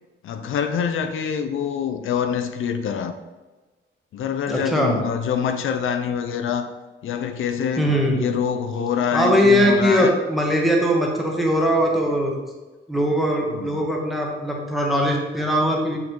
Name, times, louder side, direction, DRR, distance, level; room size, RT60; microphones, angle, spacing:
voice 1, 0.2-3.1 4.1-6.7 7.0-10.1 13.5-13.8, left 7 dB, 85° left, 8 dB, 0.6 m, -25 dB
voice 2, 4.5-4.9 7.8-8.2 9.1-12.4 12.9-16.0, equal, ahead, -1 dB, 1.1 m, -20 dB
7.3 x 4.0 x 4.6 m, 1.2 s
wide cardioid pair, 165°, 20 cm